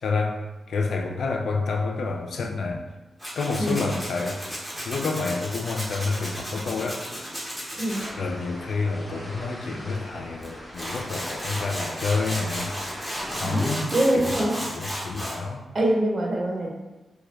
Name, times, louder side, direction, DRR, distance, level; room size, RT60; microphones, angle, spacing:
voice 1, 0.0-0.4 0.7-2.8 3.4-7.0 8.2-12.9 13.4-15.6, left 4 dB, 75° left, 3 dB, 0.4 m, -29 dB
Tools, 3.2-8.1 10.4-10.5 10.7-15.4, equal, 10° left, 0.9 m, -34 dB
voice 2, 3.6-3.9 7.8-8.1 13.4-14.6 15.7-16.7, right 1 dB, 40° right, -2 dB, 0.7 m, -24 dB
sound 1, 7.9-13.6, equal, 35° left, 1.5 m, -40 dB
2.9 x 2.3 x 3.2 m, 1.1 s
wide cardioid pair, 95°, 0 cm